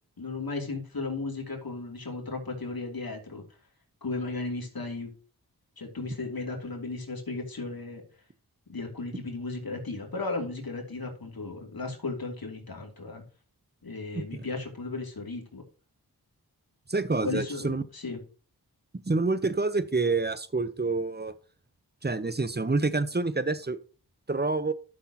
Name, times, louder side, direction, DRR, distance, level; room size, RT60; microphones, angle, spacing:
voice 1, 0.2-3.4 4.0-5.1 5.8-8.0 8.7-13.2 13.8-15.6 17.2-18.2, left 3 dB, 65° left, 2 dB, 2.9 m, -35 dB
voice 2, 16.9-17.8 19.1-21.3 22.0-23.8 24.3-24.7, right 3 dB, 25° right, 14 dB, 0.9 m, -27 dB
11.5 x 6.5 x 2.9 m, 0.37 s
cardioid pair, 40°, 38 cm